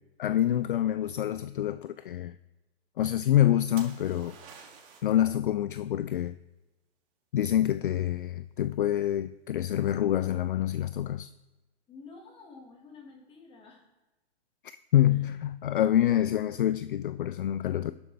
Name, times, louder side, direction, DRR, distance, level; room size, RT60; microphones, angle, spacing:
voice 1, 0.2-2.4 3.0-4.4 5.0-6.4 7.3-11.3 14.6-17.9, left 12 dB, 50° left, 0.4 m, -26 dB
sound 1, 3.8-5.2 8.9-9.3, right 6 dB, 30° right, 2.0 m, -49 dB
voice 2, 11.9-13.9 15.1-15.2, left 4 dB, 15° left, 1.7 m, -50 dB
12.0 x 10.0 x 3.4 m
figure-of-eight pair, 120°, 33 cm